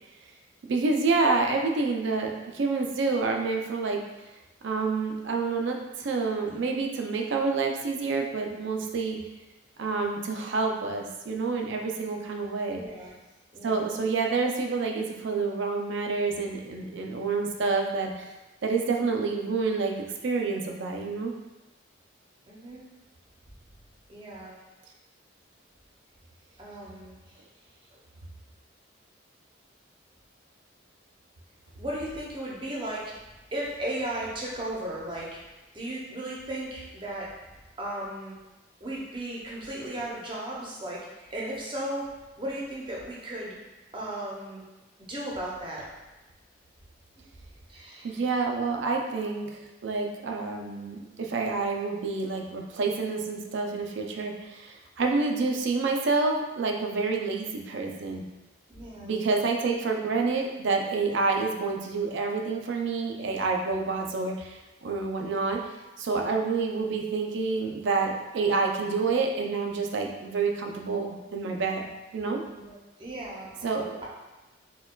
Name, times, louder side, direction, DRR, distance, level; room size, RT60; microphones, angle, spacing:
voice 1, 0.7-4.0 4.6-9.2 9.8-12.8 13.6-18.2 18.6-20.0 20.2-21.3 48.0-58.2 59.0-65.6 66.0-72.4 73.6-74.0, right 4 dB, 65° right, 2 dB, 0.4 m, -28 dB
voice 2, 12.7-13.1 13.5-13.9 22.5-22.9 24.1-24.5 26.6-27.4 27.9-28.0 31.8-33.1 33.5-35.4 35.7-37.3 37.8-38.3 38.8-42.1 42.4-43.6 43.9-44.6 45.1-45.8 47.7-48.2 48.9-49.0 58.7-59.2 72.5-73.5, right 1 dB, 25° right, -5 dB, 0.6 m, -36 dB
4.3 x 2.3 x 2.2 m, 1.1 s
head